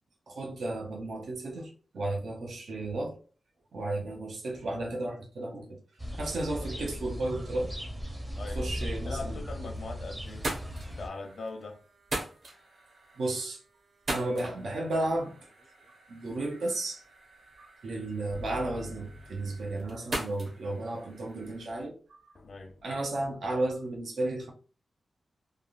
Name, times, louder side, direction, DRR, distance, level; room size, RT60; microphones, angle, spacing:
voice 1, 0.3-3.2 3.7-5.8 6.2-7.7 8.5-9.4 13.1-13.6 14.1-15.3 16.1-17.0 17.6-21.9 22.8-24.5, right 2 dB, 90° right, 0.8 m, -33 dB
sound 1, 6.0-11.1, equal, 15° right, 0.6 m, -37 dB
voice 2, 8.3-8.7 9.0-10.5 10.9-11.8 22.4-22.7, left 3 dB, 80° left, 0.7 m, -40 dB
sound 2, 9.7-9.9 10.2-21.8, right 1 dB, 50° right, 1.0 m, -42 dB
sound 3, 18.3-20.1 22.3-23.3, left 3 dB, 45° left, 0.3 m, -46 dB
3.4 x 2.3 x 2.4 m
wide cardioid pair, 170°, 0 cm